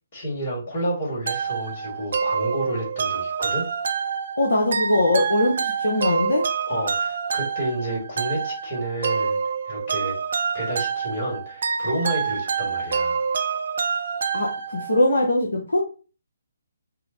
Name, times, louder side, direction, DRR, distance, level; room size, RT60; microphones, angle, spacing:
voice 1, 0.1-3.7 6.7-9.4 9.6-10.2 10.5-13.3, right 1 dB, 40° left, -2 dB, 1.8 m, -30 dB
sound 1, 1.3-15.1, right 6 dB, 50° right, 0.4 m, -27 dB
voice 2, 4.4-6.4 14.3-15.8, left 1 dB, 70° left, 0 dB, 0.7 m, -21 dB
5.4 x 2.1 x 2.7 m, 0.35 s
figure-of-eight pair, 135°, 0 cm